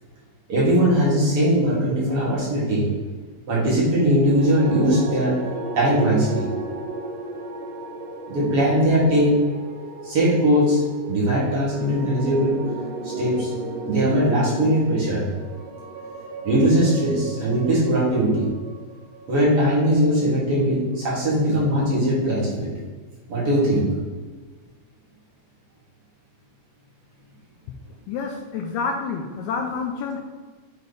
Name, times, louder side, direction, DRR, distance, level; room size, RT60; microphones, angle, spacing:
voice 1, 0.5-2.9 3.5-5.5 5.7-6.5 8.3-9.3 10.0-12.7 13.0-13.5 13.9-15.3 16.4-18.5 19.3-22.7 23.3-23.9, equal, 50° right, -7 dB, 2.5 m, -20 dB
sound 1, 4.2-20.5, right 3 dB, 80° right, 1.5 m, -35 dB
voice 2, 28.1-30.2, left 5 dB, 80° left, 3 dB, 1.8 m, -28 dB
8.6 x 3.3 x 4.0 m, 1.4 s
omnidirectional pair, 3.6 m